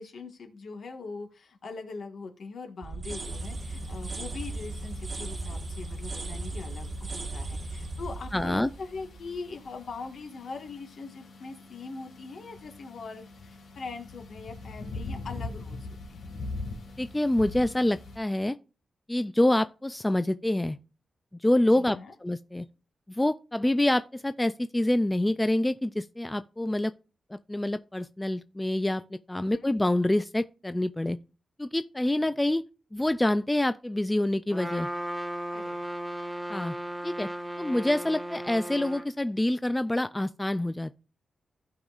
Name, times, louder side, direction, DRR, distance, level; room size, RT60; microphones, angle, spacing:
voice 1, 0.0-16.3 21.7-22.1 29.5-29.7 35.5-35.7, left 4 dB, 60° left, 1.5 m, -41 dB
sound 1, 2.8-9.7, right 2 dB, 35° right, 1.2 m, -37 dB
sound 2, 3.2-18.2, left 2 dB, 80° left, 1.8 m, -43 dB
voice 2, 8.3-8.7 17.0-18.6 19.1-20.8 21.4-22.7 23.1-26.9 27.3-31.2 31.6-32.6 32.9-34.9 36.5-36.8 37.0-37.3 37.6-41.0, left 1 dB, 10° left, 0.3 m, -26 dB
Trumpet, 34.5-39.1, right 1 dB, 5° right, 0.9 m, -35 dB
15.0 x 5.4 x 2.4 m
wide cardioid pair, 145°, 0 cm